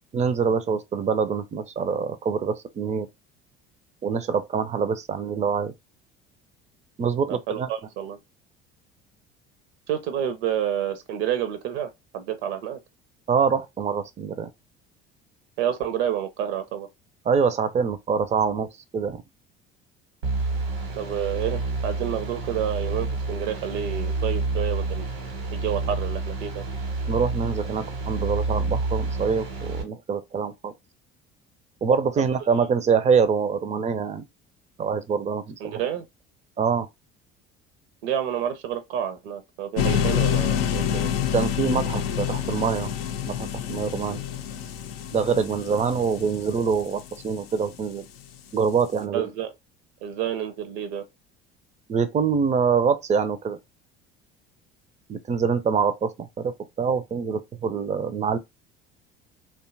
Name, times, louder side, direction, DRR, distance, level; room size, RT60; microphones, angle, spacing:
voice 1, 0.1-3.1 4.0-5.7 7.0-7.7 13.3-14.5 17.3-19.2 27.1-30.7 31.8-34.2 34.8-35.8 36.6-36.9 41.3-42.9 43.2-44.2 45.1-48.1 48.5-49.3 51.9-53.6 55.1-58.4, right 6 dB, 25° right, 0.4 m, -25 dB
voice 2, 7.3-8.2 9.9-12.8 15.6-16.9 21.0-25.1 25.5-26.6 32.2-32.3 35.6-36.1 38.0-41.1 49.1-49.5 50.0-51.0, right 9 dB, 65° right, 0.6 m, -29 dB
sound 1, 20.2-29.8, right 3 dB, 85° right, 1.0 m, -29 dB
sound 2, 39.8-47.8, left 9 dB, 80° left, 0.5 m, -27 dB
2.7 x 2.3 x 2.5 m
hypercardioid pair, 65°, 29 cm